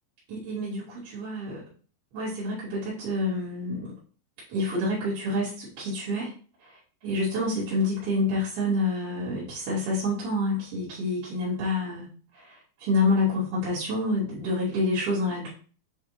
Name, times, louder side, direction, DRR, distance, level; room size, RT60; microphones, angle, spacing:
voice 1, 0.3-1.6 2.1-3.9 4.5-6.3 7.0-12.1 12.3-15.5, left 2 dB, 70° right, -11 dB, 4.4 m, -28 dB
9.7 x 3.7 x 3.2 m, 0.40 s
omnidirectional pair, 4.4 m